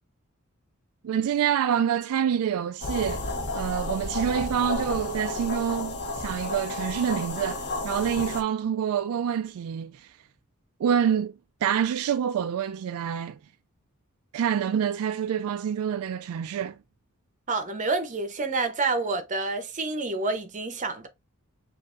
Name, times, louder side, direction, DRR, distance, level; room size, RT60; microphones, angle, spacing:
voice 1, 1.0-3.2 3.5-10.1 10.8-11.3 11.6-13.4 14.3-16.8, right 8 dB, 70° right, 0.3 m, -27 dB
sound 1, 2.8-8.4, left 2 dB, 50° left, 0.8 m, -32 dB
voice 2, 17.5-21.1, right 3 dB, 35° right, 0.8 m, -28 dB
6.5 x 2.6 x 2.5 m
head